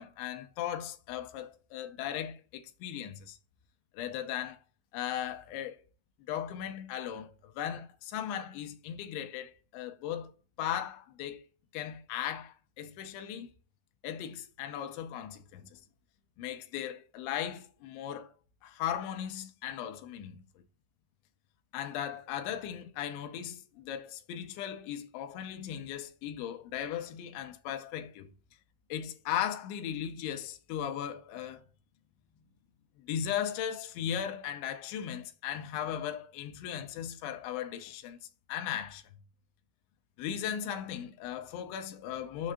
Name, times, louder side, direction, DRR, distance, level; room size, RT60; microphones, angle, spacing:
voice 1, 0.0-3.4 3.9-4.6 4.9-5.8 6.3-10.3 10.6-11.4 11.7-13.5 14.0-15.8 16.4-18.3 18.6-20.4 21.7-28.3 28.9-31.6 33.0-38.2 38.5-39.0 40.2-42.5, left 10 dB, 80° left, 3.0 m, -37 dB
7.4 x 6.4 x 3.6 m
omnidirectional pair, 5.3 m